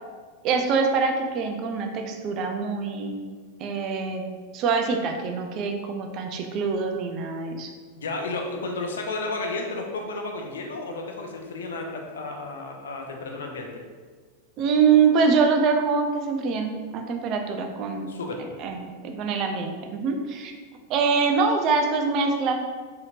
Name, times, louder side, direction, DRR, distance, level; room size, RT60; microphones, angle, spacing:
voice 1, 0.4-3.2 3.6-4.2 4.5-7.7 14.6-18.1 18.6-20.5 20.9-22.6, right 5 dB, 35° right, 4 dB, 0.4 m, -24 dB
voice 2, 8.0-13.8 18.1-18.4, left 2 dB, 65° left, 2 dB, 0.5 m, -32 dB
4.2 x 2.8 x 2.4 m, 1.5 s
figure-of-eight pair, 90°, 0 cm